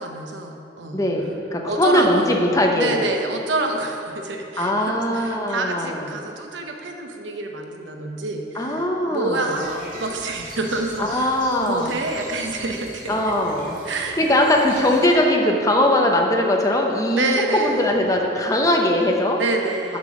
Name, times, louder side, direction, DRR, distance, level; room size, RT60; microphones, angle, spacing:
voice 1, 0.0-1.0 1.7-2.3 2.7-13.2 13.9-14.2 17.1-17.8 19.4-20.0, right 2 dB, 85° right, 3 dB, 0.8 m, -27 dB
voice 2, 0.9-3.0 4.6-6.1 8.5-9.6 11.0-12.0 13.1-19.4 19.9-20.0, left 1 dB, 20° left, 1 dB, 0.8 m, -21 dB
sound 1, 9.5-15.0, right 1 dB, 45° right, 1.9 m, -40 dB
7.4 x 6.0 x 6.1 m, 2.7 s
head